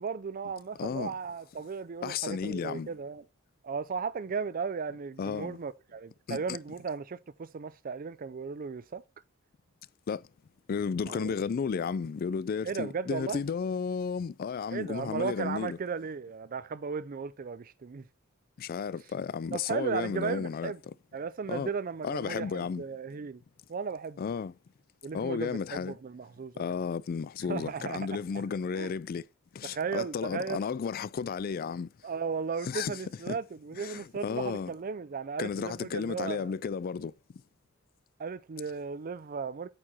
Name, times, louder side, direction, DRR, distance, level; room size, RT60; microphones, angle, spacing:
voice 1, 0.0-3.2 3.6-9.0 11.1-11.3 12.6-13.4 14.7-18.0 19.5-20.8 21.1-23.4 23.7-24.2 25.0-26.8 27.5-28.1 28.3-28.4 28.8-28.9 29.6-30.6 32.0-36.5 38.2-39.7, right 5 dB, 40° right, 0.4 m, -36 dB
voice 2, 0.8-1.1 2.0-2.9 5.2-5.6 6.3-6.4 10.1-10.2 10.7-15.8 18.6-20.7 21.5-21.7 22.0-22.8 24.2-24.5 25.1-25.9 26.6-29.2 29.5-31.9 32.7-33.0 33.3-33.4 33.8-34.7 35.4-37.1, left 6 dB, 45° left, 0.3 m, -33 dB
8.7 x 4.7 x 4.3 m
head